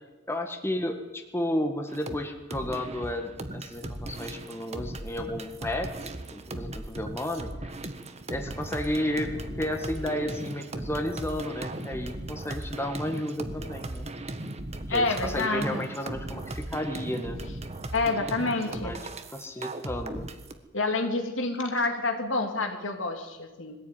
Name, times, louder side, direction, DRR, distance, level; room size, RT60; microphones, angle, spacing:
voice 1, 0.3-7.7 8.3-14.1 14.9-17.4 18.6-19.0 19.3-20.3, left 1 dB, 15° left, 4 dB, 1.7 m, -32 dB
sound 1, 1.9-2.2 2.5-20.5, right 2 dB, 35° right, 1.5 m, -37 dB
voice 2, 14.9-15.8 17.9-19.1 20.7-23.8, left 3 dB, 70° left, 4 dB, 3.0 m, -28 dB
22.0 x 15.5 x 9.4 m, 1.1 s
head